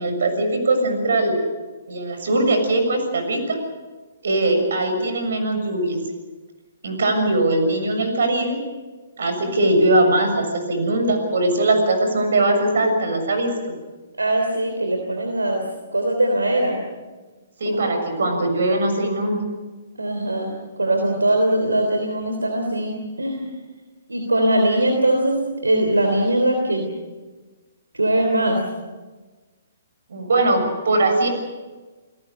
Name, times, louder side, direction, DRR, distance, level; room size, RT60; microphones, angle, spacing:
voice 1, 0.0-1.4 1.9-3.6 4.2-6.0 6.8-8.6 9.2-13.7 17.6-19.4 30.1-31.3, right 2 dB, 65° right, 6 dB, 6.9 m, -20 dB
voice 2, 14.2-15.7 15.9-16.8 17.6-17.8 20.0-20.5 20.8-23.5 24.1-25.4 25.6-26.9 27.9-28.6, right 1 dB, 90° right, 3 dB, 3.4 m, -21 dB
29.5 x 18.5 x 6.9 m, 1.3 s
figure-of-eight pair, 130°, 0 cm